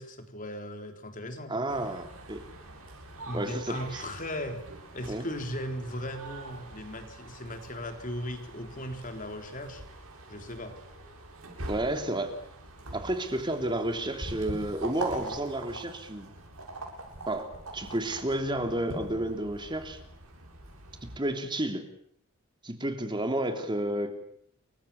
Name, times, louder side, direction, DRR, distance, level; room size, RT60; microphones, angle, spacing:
voice 1, 0.0-1.5 3.3-4.6 4.9-9.8 10.3-10.7, left 1 dB, 40° left, 5 dB, 3.9 m, -37 dB
voice 2, 1.5-2.4 3.3-4.0 5.1-5.3 11.7-12.3 12.9-16.3 17.3-20.0 21.0-21.8 22.6-24.1, right 1 dB, 20° right, 5 dB, 3.3 m, -31 dB
sound 1, 1.7-21.2, right 2 dB, 80° right, 7.8 m, -44 dB
29.5 x 24.0 x 7.2 m, 0.65 s
head